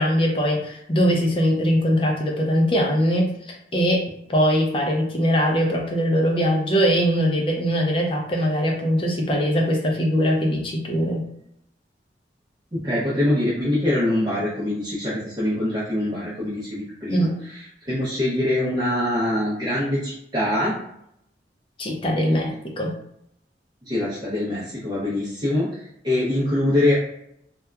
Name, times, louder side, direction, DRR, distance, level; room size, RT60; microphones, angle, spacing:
voice 1, 0.0-11.2 17.1-17.4 21.8-22.9, equal, 30° left, 0 dB, 0.5 m, -21 dB
voice 2, 12.7-17.3 17.8-20.8 23.8-26.9, left 1 dB, 25° right, -10 dB, 0.6 m, -24 dB
2.7 x 2.3 x 2.2 m, 0.76 s
head